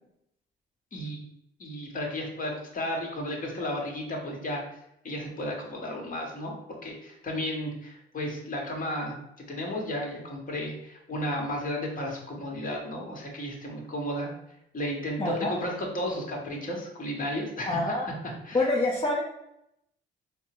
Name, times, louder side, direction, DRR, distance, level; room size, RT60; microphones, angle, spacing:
voice 1, 1.6-4.6 5.0-6.6 6.8-9.1 9.5-14.3 14.7-18.1 18.4-18.6, equal, 45° left, 0 dB, 1.2 m, -33 dB
voice 2, 15.2-15.5 17.7-18.1 18.5-19.2, left 2 dB, 25° left, -3 dB, 0.7 m, -26 dB
4.2 x 2.0 x 4.3 m, 0.80 s
cardioid pair, 90°, 20 cm